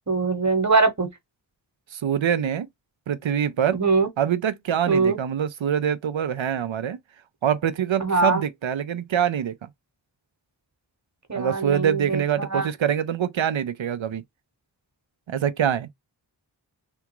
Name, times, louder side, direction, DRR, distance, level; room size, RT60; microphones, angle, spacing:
voice 1, 0.1-1.1 3.7-4.1 4.9-5.2 8.0-8.4 11.3-12.7, right 3 dB, 40° right, 1.1 m, -22 dB
voice 2, 1.9-2.7 3.1-3.8 4.2-7.0 7.4-9.7 11.4-14.2 15.3-15.9, right 9 dB, 85° right, 0.6 m, -25 dB
3.5 x 2.4 x 2.9 m
wide cardioid pair, 40°, 45 cm